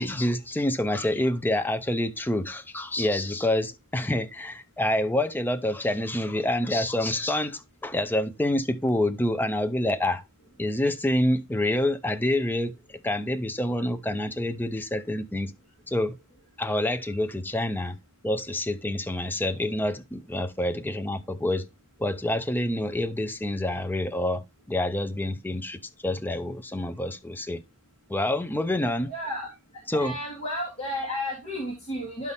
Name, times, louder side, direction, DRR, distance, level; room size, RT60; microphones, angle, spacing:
voice 1, 0.0-10.2 10.6-12.7 13.0-15.5 15.9-16.2 16.6-18.0 18.2-21.7 22.0-27.6 28.1-29.1 29.9-30.2, left 1 dB, 10° left, 0.5 m, -27 dB
voice 2, 29.1-29.5 29.9-32.3, left 1 dB, 30° left, 2.7 m, -32 dB
11.5 x 4.1 x 3.4 m
head